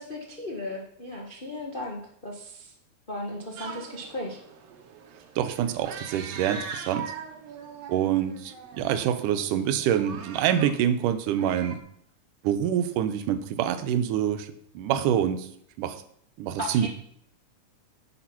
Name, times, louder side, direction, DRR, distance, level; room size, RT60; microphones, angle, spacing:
voice 1, 0.0-2.7 3.1-4.4 16.6-16.9, left 1 dB, 65° left, 0 dB, 0.5 m, -36 dB
sound 1, 3.6-11.8, right 6 dB, 60° right, 2.1 m, -41 dB
voice 2, 5.4-7.1 7.9-11.8 12.4-15.5 15.8-16.0 16.4-16.9, right 10 dB, 85° right, 11 dB, 2.3 m, -26 dB
10.5 x 7.6 x 5.8 m, 0.66 s
omnidirectional pair, 3.7 m